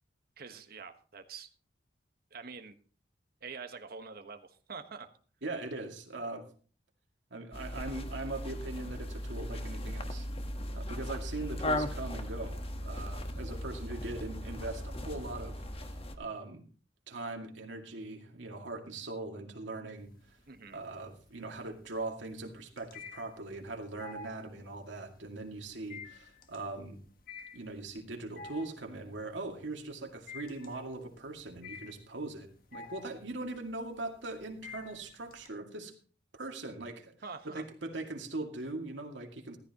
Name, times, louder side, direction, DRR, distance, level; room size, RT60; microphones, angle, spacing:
voice 1, 0.4-1.5 2.3-2.7 3.4-5.1 20.5-20.8 37.2-37.6, right 5 dB, 55° right, 8 dB, 1.2 m, -45 dB
voice 2, 5.4-6.5 7.3-10.3 10.7-16.6 17.1-20.1 20.7-27.0 27.5-35.9 36.3-37.1 37.4-39.6, right 2 dB, 80° right, 3 dB, 2.2 m, -41 dB
sound 1, 7.5-16.2, left 1 dB, 35° left, 1.3 m, -37 dB
sound 2, 20.0-20.6 21.0-35.5, left 4 dB, 55° left, 1.6 m, -49 dB
14.5 x 14.0 x 3.0 m, 0.40 s
head